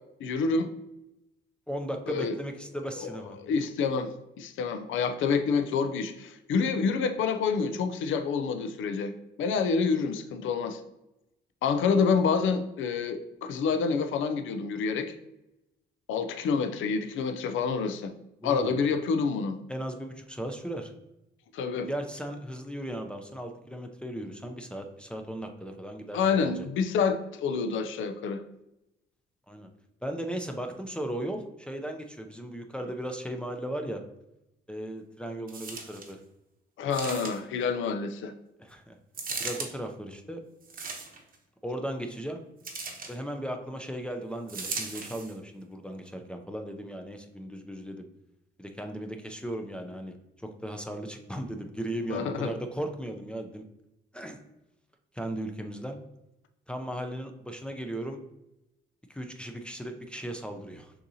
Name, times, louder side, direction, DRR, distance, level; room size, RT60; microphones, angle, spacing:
voice 1, 0.2-0.7 2.1-2.4 3.0-3.1 3.4-4.1 4.4-9.1 9.4-10.8 11.6-15.1 16.1-18.1 18.4-19.6 21.5-21.9 26.1-28.4 36.8-38.3 52.1-52.5, left 5 dB, 80° left, 8 dB, 0.5 m, -28 dB
voice 2, 1.7-3.4 18.4-18.8 19.7-20.9 21.9-26.6 29.5-29.7 30.0-34.0 34.7-36.2 38.6-39.0 39.4-40.4 41.6-42.4 43.1-48.0 48.6-50.1 50.4-53.6 54.1-54.4 55.1-56.0 56.7-58.2 59.1-60.9, right 1 dB, 5° left, 3 dB, 0.5 m, -36 dB
sound 1, 35.5-36.1 36.9-37.6 39.1-39.7 40.6-41.4 42.6-43.2 44.5-45.3 46.1-46.2, right 4 dB, 45° right, 0.9 m, -37 dB
6.4 x 2.8 x 2.7 m, 0.88 s
cardioid pair, 90°, 20 cm